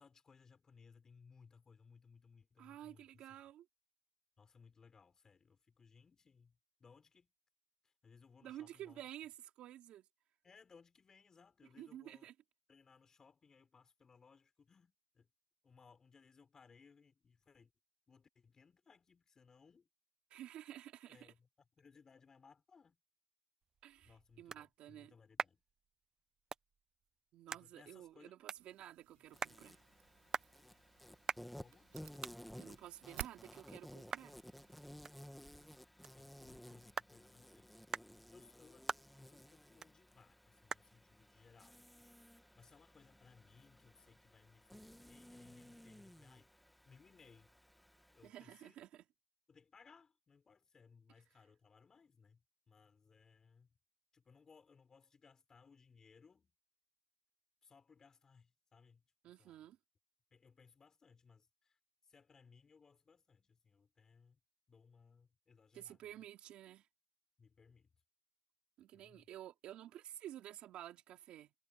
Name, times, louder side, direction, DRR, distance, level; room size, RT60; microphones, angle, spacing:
voice 1, 0.0-3.3 4.4-7.3 7.8-9.0 10.4-12.3 12.7-15.3 15.6-17.7 18.1-19.9 21.1-21.5 21.8-23.0 24.0-25.6 27.5-28.3 29.3-29.4 31.6-31.9 35.8-35.9 36.1-37.8 38.3-41.9 42.6-46.5 46.8-47.5 48.1-48.8 49.5-53.7 54.1-56.5 57.6-59.0 59.4-59.6 60.3-61.8 62.0-64.4 64.7-66.1 67.4-67.9 68.9-69.3, left 5 dB, 25° left, 5.4 m, -65 dB
voice 2, 2.6-3.7 8.4-10.0 11.8-12.3 20.3-21.3 23.8-25.1 27.3-29.8 32.6-34.4 48.2-49.0 59.2-59.8 65.7-66.9 68.8-71.5, right 12 dB, 55° right, 3.1 m, -52 dB
sound 1, 23.6-42.9, right 6 dB, 25° right, 0.9 m, -49 dB
sound 2, 28.6-35.8, right 26 dB, 75° right, 7.0 m, -57 dB
Insect, 29.3-48.3, equal, ahead, 1.8 m, -57 dB
supercardioid pair, 115°, 2 cm